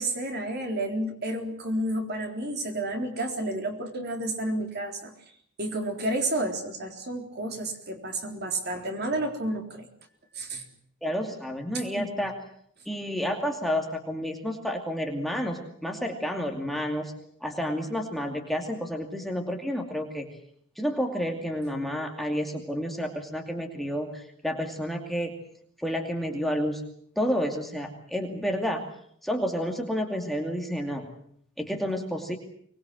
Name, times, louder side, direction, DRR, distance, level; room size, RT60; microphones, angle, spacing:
voice 1, 0.0-5.1 5.6-9.8 10.3-10.6, right 1 dB, 50° right, 4 dB, 3.9 m, -31 dB
voice 2, 11.0-12.3 12.9-17.1 17.4-20.3 20.8-25.3 25.8-26.8 27.2-28.8 29.2-31.1 31.6-32.4, equal, ahead, 2 dB, 2.5 m, -30 dB
24.5 x 21.0 x 7.7 m, 0.64 s
head